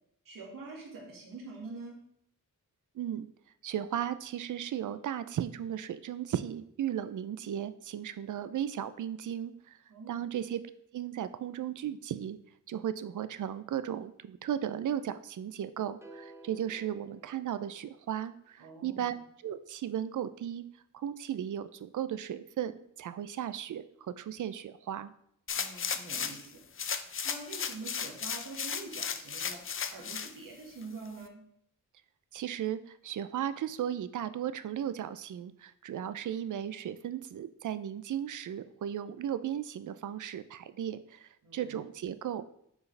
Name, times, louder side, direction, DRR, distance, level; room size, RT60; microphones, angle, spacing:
voice 1, 0.2-2.0 9.9-10.2 18.6-19.2 25.5-26.6 27.2-29.6 29.9-31.4 41.4-41.8, right 3 dB, 85° right, -1 dB, 1.7 m, -45 dB
voice 2, 3.0-3.3 3.6-9.8 10.1-10.6 10.9-12.4 12.7-19.1 19.4-20.6 20.9-25.1 32.3-42.4, right 10 dB, 65° right, 13 dB, 0.5 m, -36 dB
sound 1, 16.0-18.3, right 2 dB, 10° right, 0.7 m, -53 dB
sound 2, 25.5-26.5 26.8-30.3 30.8-30.9, left 7 dB, 40° left, 0.4 m, -35 dB
6.7 x 4.7 x 3.2 m, 0.70 s
wide cardioid pair, 110°, 33 cm